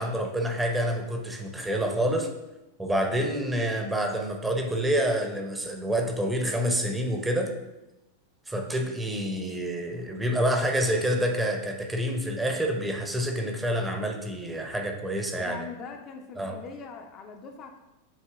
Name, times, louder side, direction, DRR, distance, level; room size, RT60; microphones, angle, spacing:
voice 1, 0.0-2.3 2.8-7.5 8.5-15.6 16.4-16.5, equal, 10° right, 3 dB, 0.6 m, -27 dB
voice 2, 15.4-17.8, left 5 dB, 35° left, 3 dB, 0.4 m, -42 dB
7.2 x 2.8 x 2.4 m, 0.98 s
figure-of-eight pair, 90°, 0 cm